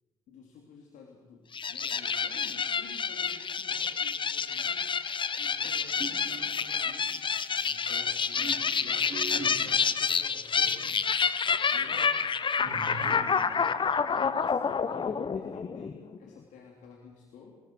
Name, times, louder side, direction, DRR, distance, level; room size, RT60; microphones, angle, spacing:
voice 1, 0.3-5.0 5.4-10.8 11.7-17.6, left 5 dB, 60° left, 0 dB, 3.1 m, -51 dB
sound 1, 1.5-16.2, left 6 dB, 35° left, 1.0 m, -29 dB
sound 2, 5.6-7.5 8.1-11.1 11.4-11.5 12.6-14.7, right 3 dB, 35° right, 5.8 m, -44 dB
30.0 x 20.0 x 4.7 m, 1.3 s
figure-of-eight pair, 45°, 15 cm